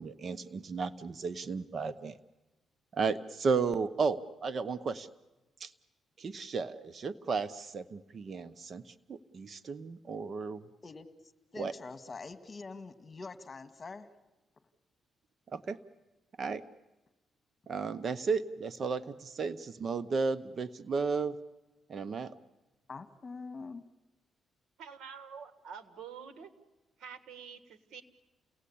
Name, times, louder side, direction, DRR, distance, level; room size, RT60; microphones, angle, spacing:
voice 1, 0.0-2.2 2.9-5.1 5.6-5.7 6.2-10.6 11.6-11.7 15.5-15.8 16.4-16.6 17.7-21.4 21.9-22.4, right 4 dB, 50° right, 14 dB, 0.9 m, -34 dB
voice 2, 11.5-14.1 22.9-23.8, left 4 dB, 35° left, 10 dB, 1.7 m, -44 dB
voice 3, 24.8-26.5 27.0-28.0, right 7 dB, 80° right, 10 dB, 1.7 m, -47 dB
29.0 x 18.5 x 8.6 m, 1.1 s
cardioid pair, 85°, 0 cm